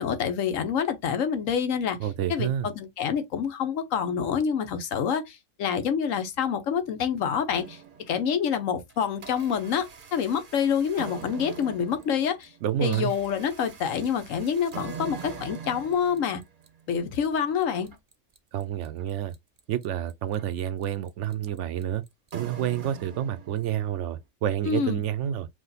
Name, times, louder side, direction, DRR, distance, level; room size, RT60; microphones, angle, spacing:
voice 1, 0.0-2.0 2.3-7.8 8.1-12.5 12.8-16.4 16.9-17.9 24.6-25.0, left 7 dB, 80° left, 1.2 m, -27 dB
voice 2, 2.0-2.7 12.6-13.1 18.5-19.3 19.7-22.0 22.3-25.5, right 10 dB, 75° right, 0.9 m, -29 dB
sound 1, 7.5-8.4 8.9-23.9, right 7 dB, 45° right, 0.8 m, -43 dB
4.9 x 2.3 x 4.0 m
omnidirectional pair, 1.3 m